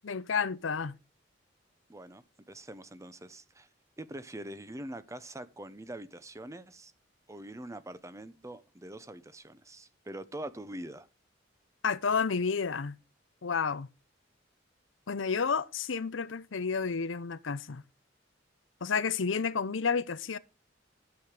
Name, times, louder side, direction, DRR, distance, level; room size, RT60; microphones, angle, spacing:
voice 1, 0.0-0.9 11.8-13.0 13.4-13.9 15.1-17.8 18.8-20.4, left 5 dB, 75° left, 0.7 m, -30 dB
voice 2, 1.9-3.7 4.0-6.9 7.3-11.1, right 1 dB, 15° right, 0.8 m, -44 dB
12.0 x 7.8 x 4.9 m
head